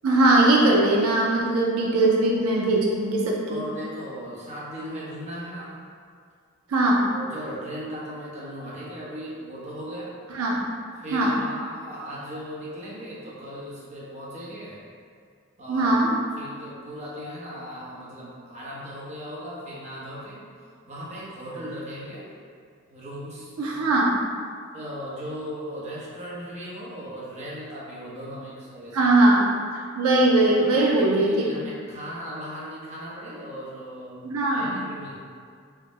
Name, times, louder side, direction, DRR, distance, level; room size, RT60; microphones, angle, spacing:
voice 1, 0.0-3.6 6.7-7.1 10.3-10.6 11.1-11.4 15.7-16.1 23.6-24.2 28.9-31.5 34.2-34.8, right 2 dB, 85° right, -2 dB, 0.5 m, -20 dB
voice 2, 3.5-5.7 7.1-10.1 11.0-14.8 15.6-15.9 16.4-20.4 20.9-22.3 22.9-23.5 24.7-29.1 30.6-34.2 34.5-35.2, equal, 30° right, -7 dB, 0.8 m, -37 dB
3.6 x 2.1 x 3.9 m, 2.1 s
head